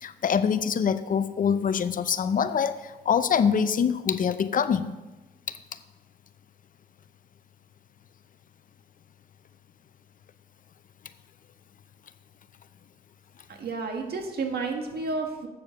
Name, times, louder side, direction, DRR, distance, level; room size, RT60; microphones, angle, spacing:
voice 1, 0.0-4.9 5.5-5.6, left 7 dB, 55° left, 12 dB, 0.6 m, -25 dB
voice 2, 13.5-15.5, right 4 dB, 70° right, 3 dB, 1.7 m, -31 dB
8.4 x 6.9 x 6.3 m, 1.1 s
cardioid pair, 90°, 17 cm